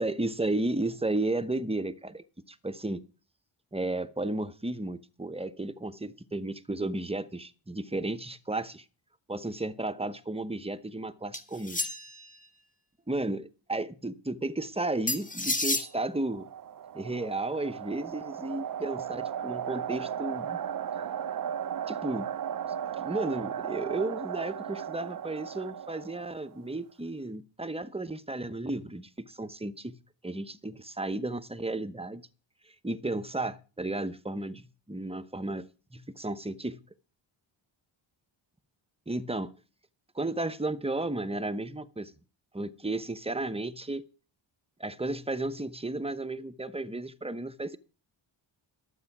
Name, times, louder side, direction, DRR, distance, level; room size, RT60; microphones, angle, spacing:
voice 1, 0.0-3.0 3.7-8.8 9.3-11.8 13.1-16.5 16.9-20.6 21.9-22.3 23.0-30.0 30.2-32.3 32.7-35.7 35.9-36.8 39.1-39.5 40.1-42.1 42.5-44.0 44.8-47.8, right 2 dB, 10° right, 0.8 m, -33 dB
sound 1, 11.3-12.3 15.1-15.9, left 2 dB, 15° left, 1.6 m, -30 dB
sound 2, 15.8-26.6, right 8 dB, 45° right, 0.6 m, -36 dB
12.5 x 8.1 x 6.0 m
cardioid pair, 85°, 49 cm